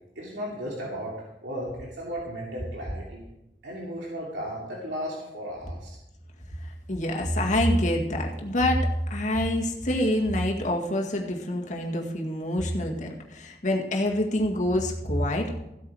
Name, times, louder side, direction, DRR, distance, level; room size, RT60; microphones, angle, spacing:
voice 1, 0.2-1.1 1.4-3.2 3.6-5.9, equal, 85° right, -4 dB, 2.8 m, -35 dB
voice 2, 6.6-15.6, left 1 dB, 45° left, 0 dB, 2.0 m, -26 dB
15.5 x 8.3 x 4.8 m, 0.89 s
head